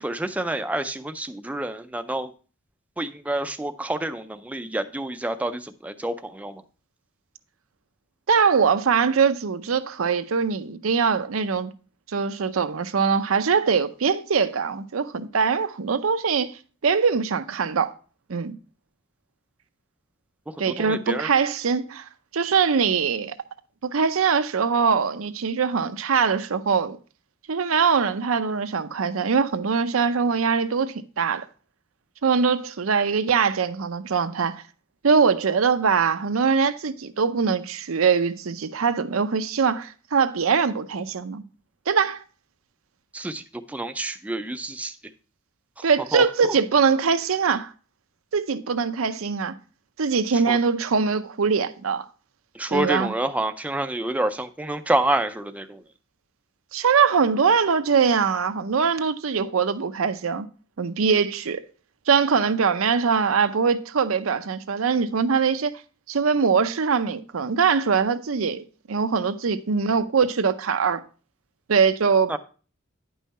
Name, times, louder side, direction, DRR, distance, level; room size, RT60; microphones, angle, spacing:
voice 1, 0.0-2.3 3.0-6.6 20.8-21.3 43.1-43.4 43.7-44.9 46.1-46.2 50.5-50.6 52.6-55.8 72.3-72.4, right 1 dB, 5° right, 0.4 m, -28 dB
voice 2, 8.3-11.7 12.1-16.5 16.8-17.9 18.3-18.5 20.6-22.1 22.3-23.4 23.8-27.0 27.5-31.5 32.2-34.6 35.0-41.4 41.9-42.2 45.8-47.7 48.3-49.5 50.0-52.1 52.7-53.1 56.7-60.5 60.8-61.6 62.1-65.8 66.1-68.6 68.9-71.0 71.7-72.4, right 5 dB, 85° right, 0.6 m, -22 dB
9.2 x 5.6 x 4.1 m
head